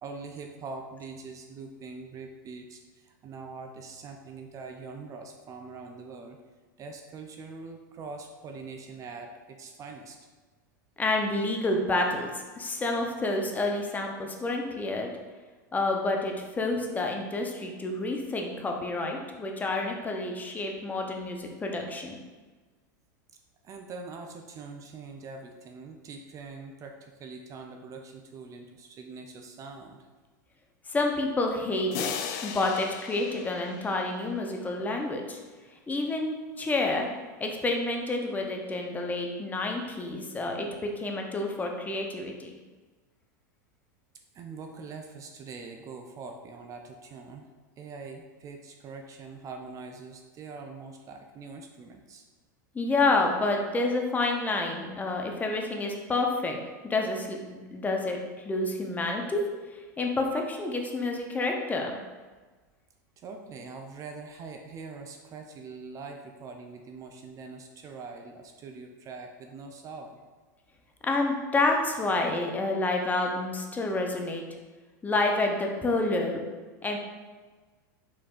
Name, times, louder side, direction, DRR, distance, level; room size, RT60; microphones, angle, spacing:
voice 1, 0.0-6.4 6.8-10.2 23.6-30.1 44.3-47.5 47.8-52.2 63.2-70.2, right 4 dB, 30° right, 4 dB, 0.4 m, -43 dB
voice 2, 11.0-15.1 15.7-22.2 30.9-32.1 32.4-35.4 35.9-37.1 37.4-42.5 52.7-56.6 56.8-59.4 59.7-62.0 71.0-74.4 75.0-76.4 76.8-77.0, left 2 dB, 15° left, 2 dB, 0.6 m, -29 dB
sound 1, 31.9-34.6, left 8 dB, 55° left, 0.4 m, -37 dB
4.5 x 4.2 x 2.4 m, 1.3 s
hypercardioid pair, 105°, 10 cm